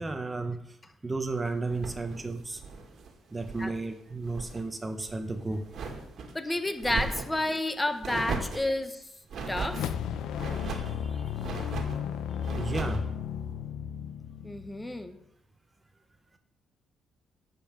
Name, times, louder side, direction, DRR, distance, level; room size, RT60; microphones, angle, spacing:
voice 1, 0.0-2.6 3.3-5.7 8.5-8.8 10.1-10.2 10.6-11.7 12.4-13.1, right 3 dB, 20° right, 8 dB, 0.9 m, -34 dB
sound 1, 1.7-3.8 4.1-4.6 5.0-6.3 6.8-7.4 8.0-8.7 9.3-9.9 10.3-11.0 11.4-12.0 12.4-13.1, right 4 dB, 65° right, 1.7 m, -37 dB
voice 2, 6.3-9.1 9.5-9.9 14.4-15.2, left 1 dB, 15° left, 9 dB, 1.0 m, -30 dB
sound 2, 9.7-15.1, left 8 dB, 80° left, 0.6 m, -34 dB
10.0 x 5.4 x 7.3 m, 0.81 s
cardioid pair, 90°, 0 cm